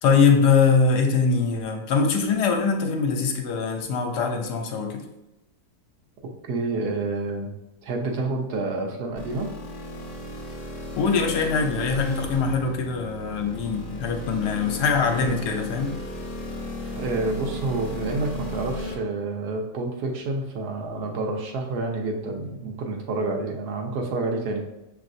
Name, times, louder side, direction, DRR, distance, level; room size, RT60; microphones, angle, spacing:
voice 1, 0.0-5.1 11.0-16.0, left 5 dB, 75° left, 3 dB, 1.2 m, -22 dB
voice 2, 6.5-7.5 7.8-9.5 16.9-24.7, right 2 dB, 70° right, 1 dB, 1.2 m, -28 dB
sound 1, 9.2-18.9, equal, 40° left, 0.8 m, -35 dB
6.3 x 3.1 x 2.6 m, 0.95 s
omnidirectional pair, 1.9 m